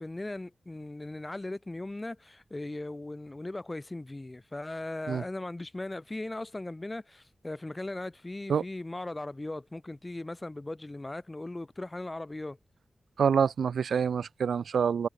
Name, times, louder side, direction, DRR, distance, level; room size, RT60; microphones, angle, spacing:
voice 1, 0.0-12.6, left 2 dB, 25° left, 4.2 m, -38 dB
voice 2, 13.2-15.1, right 7 dB, 90° right, 0.5 m, -26 dB
cardioid pair, 55°, 0 cm